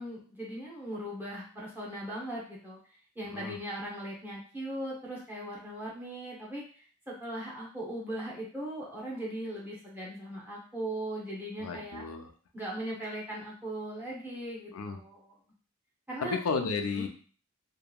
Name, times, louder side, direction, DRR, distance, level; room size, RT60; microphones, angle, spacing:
voice 1, 0.0-2.8 3.2-12.0 12.5-15.4 16.1-16.4 16.9-17.1, right 1 dB, 10° right, -5 dB, 0.7 m, -39 dB
voice 2, 11.6-12.3 14.7-15.0 16.2-17.1, left 5 dB, 80° left, 5 dB, 0.5 m, -33 dB
2.8 x 2.5 x 2.2 m, 0.42 s
head